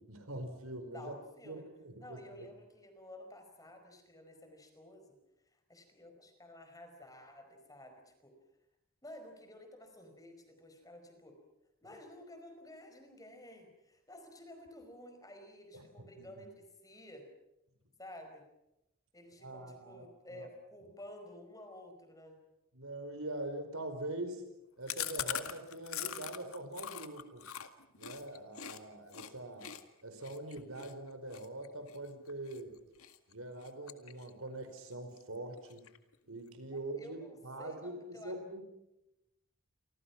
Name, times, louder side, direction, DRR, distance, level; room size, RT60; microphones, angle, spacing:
voice 1, 0.0-1.2 1.4-2.5 15.7-15.8 16.2-16.4 19.4-20.1 20.3-20.5 22.7-24.4 24.8-27.4 28.0-29.7 30.0-32.7 33.3-35.8 36.3-38.6, right 2 dB, 85° right, 7 dB, 4.8 m, -43 dB
voice 2, 0.9-1.7 2.0-5.2 5.7-8.3 9.0-11.4 11.8-17.3 18.0-18.5 19.1-22.4 36.7-38.4, left 1 dB, 15° left, 5 dB, 5.0 m, -52 dB
Chewing mastication, 24.9-28.8 29.1-29.3 29.6-32.6 33.0-33.3 33.6-34.5 34.8-34.9 35.2-35.3 35.6-36.1, left 10 dB, 85° left, 2.0 m, -42 dB
29.5 x 25.0 x 6.0 m, 0.91 s
head